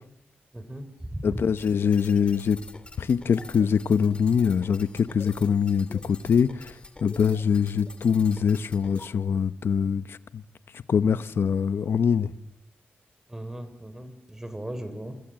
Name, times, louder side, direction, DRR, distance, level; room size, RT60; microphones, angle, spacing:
voice 1, 0.5-1.4 13.3-15.2, right 1 dB, 15° right, 3.9 m, -37 dB
voice 2, 1.2-2.6 3.0-10.4 10.7-12.3, left 7 dB, 75° left, 1.0 m, -24 dB
sound 1, 1.6-9.1, left 2 dB, 25° left, 2.7 m, -46 dB
27.5 x 26.0 x 7.7 m
wide cardioid pair, 120°, 4 cm